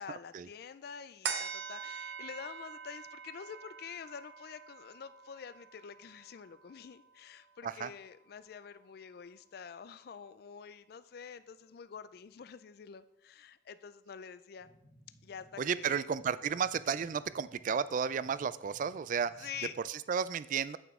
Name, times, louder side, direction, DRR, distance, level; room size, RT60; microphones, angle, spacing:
voice 1, 0.0-14.7 15.2-16.1 19.4-19.7, left 7 dB, 55° left, 13 dB, 0.4 m, -47 dB
sound 1, 1.2-8.0 8.5-8.6, right 6 dB, 80° right, 0.9 m, -44 dB
sound 2, 14.6-19.8, right 1 dB, ahead, 1.4 m, -61 dB
voice 2, 15.6-19.5 19.9-20.8, right 7 dB, 45° right, 16 dB, 0.3 m, -33 dB
9.0 x 8.1 x 3.6 m, 0.84 s
head